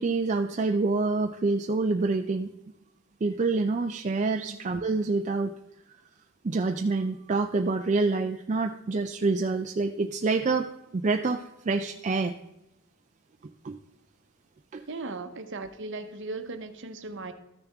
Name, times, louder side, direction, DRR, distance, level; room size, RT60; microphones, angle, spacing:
voice 1, 0.0-2.5 3.2-5.5 6.4-12.3 13.6-13.8 14.7-14.8, right 3 dB, 30° right, 5 dB, 0.4 m, -27 dB
voice 2, 14.9-17.3, right 3 dB, 55° right, 8 dB, 0.9 m, -37 dB
13.5 x 6.8 x 3.5 m, 0.87 s
head